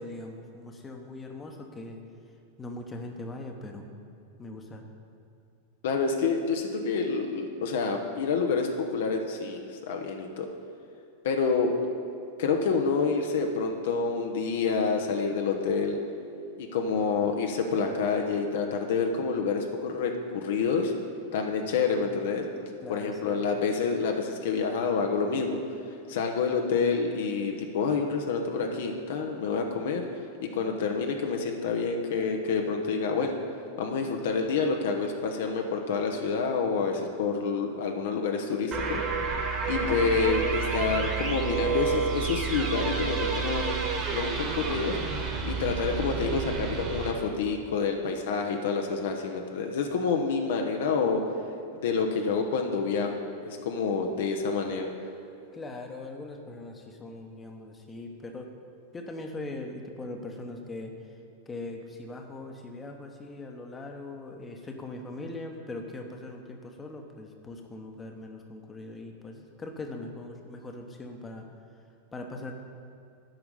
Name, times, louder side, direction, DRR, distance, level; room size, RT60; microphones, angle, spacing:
voice 1, 0.0-2.0 2.6-3.9 4.4-4.8 22.8-23.4 39.7-40.3 55.5-58.5 58.9-60.9 61.5-71.4 72.1-72.5, left 2 dB, 15° left, 3 dB, 1.1 m, -40 dB
voice 2, 5.8-10.5 11.2-11.7 12.4-16.0 16.6-20.9 21.3-25.6 26.1-30.0 30.5-33.4 33.8-39.0 39.7-43.8 44.1-45.0 45.5-51.2 51.7-54.9, left 5 dB, 55° left, 3 dB, 0.9 m, -28 dB
sound 1, 38.7-47.1, right 5 dB, 30° right, 1.9 m, -30 dB
9.0 x 5.9 x 8.2 m, 2.7 s
figure-of-eight pair, 90°, 0 cm